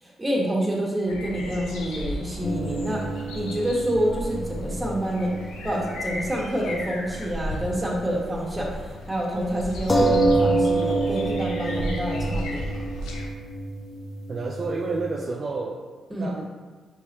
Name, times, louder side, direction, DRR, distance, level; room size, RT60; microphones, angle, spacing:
voice 1, 0.0-3.0 3.3-5.3 5.6-12.8 16.1-16.3, equal, 15° right, -3 dB, 1.2 m, -27 dB
sound 1, 1.1-13.3, left 1 dB, 85° left, 0.5 m, -35 dB
sound 2, 2.4-6.3 6.6-6.7 9.9-15.1, right 2 dB, 25° left, 0.5 m, -27 dB
voice 2, 14.3-15.8 16.2-16.5, right 3 dB, 50° right, 1 dB, 0.3 m, -29 dB
4.6 x 3.0 x 2.9 m, 1.4 s
supercardioid pair, 55°, 0 cm